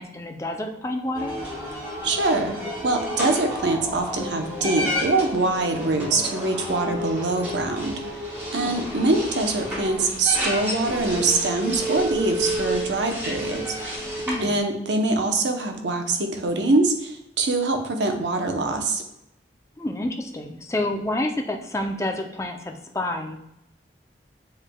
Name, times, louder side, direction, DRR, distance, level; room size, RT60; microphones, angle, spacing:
voice 1, 0.0-1.4 8.5-9.1 14.3-14.6 19.8-23.4, left 1 dB, 15° left, 3 dB, 0.4 m, -29 dB
sound 1, 1.1-14.6, equal, 10° right, 1.5 m, -30 dB
voice 2, 2.0-2.6 2.8-7.9 8.5-13.6 14.4-19.0, right 2 dB, 85° right, 5 dB, 0.7 m, -24 dB
7.2 x 3.3 x 2.2 m, 0.83 s
head